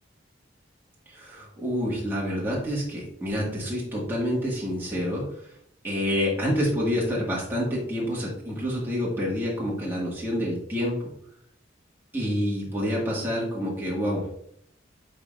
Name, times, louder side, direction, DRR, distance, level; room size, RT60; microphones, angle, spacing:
voice 1, 1.1-5.2 5.8-11.0 12.1-14.4, equal, 10° right, -5 dB, 1.8 m, -28 dB
9.4 x 4.0 x 2.5 m, 0.68 s
head